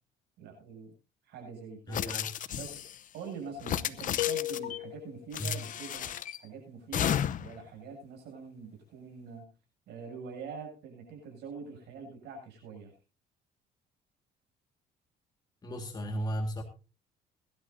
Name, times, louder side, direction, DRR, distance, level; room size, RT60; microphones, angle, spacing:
voice 1, 0.4-0.9 1.2-2.1 2.5-2.8 3.1-9.5 9.9-12.9, right 5 dB, 80° right, 2 dB, 7.7 m, -45 dB
sound 1, 1.9-3.0 3.6-4.8 5.3-6.4 6.9-7.6, left 10 dB, 50° left, 0.8 m, -33 dB
voice 2, 1.9-2.3 5.4-5.6 15.6-16.6, equal, 25° left, 3 dB, 1.9 m, -35 dB
sound 2, 4.2-5.3, left 17 dB, 75° left, 1.0 m, -34 dB
23.0 x 12.0 x 2.7 m, 0.32 s
cardioid pair, 110°, 17 cm